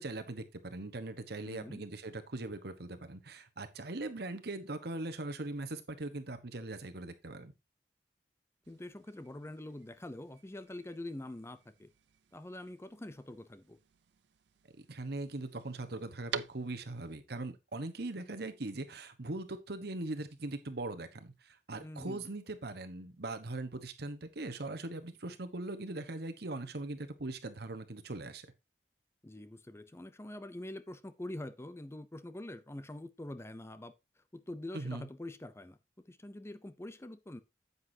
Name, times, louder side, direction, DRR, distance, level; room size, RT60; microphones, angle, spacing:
voice 1, 0.0-7.5 14.8-28.5 34.7-35.0, right 2 dB, 65° right, 1.2 m, -40 dB
voice 2, 1.5-1.8 8.7-11.9 12.3-13.8 21.8-22.2 29.2-33.9 34.3-35.8 36.1-37.4, left 1 dB, 15° left, 0.6 m, -45 dB
sound 1, 8.6-17.1, right 7 dB, 80° right, 0.5 m, -49 dB
9.5 x 8.2 x 2.8 m
head